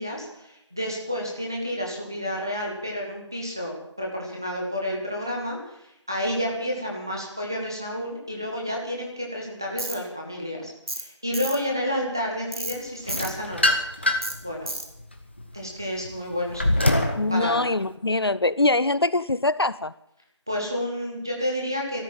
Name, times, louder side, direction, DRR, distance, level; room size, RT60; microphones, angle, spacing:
voice 1, 0.0-13.8 14.4-14.7 15.5-17.6 20.5-22.0, equal, 10° right, 0.9 m, -30 dB
Tools, 9.8-10.0 10.9-11.1 11.3-11.6 12.5-12.8 13.1-13.3 14.2-14.4 14.7-14.9, right 1 dB, 55° right, 3.0 m, -31 dB
sound 1, 13.1-14.4 14.9-17.2, left 1 dB, 20° left, 1.1 m, -24 dB
voice 2, 17.2-19.9, left 2 dB, 55° left, 0.5 m, -23 dB
14.0 x 13.0 x 7.3 m
figure-of-eight pair, 175°, 16 cm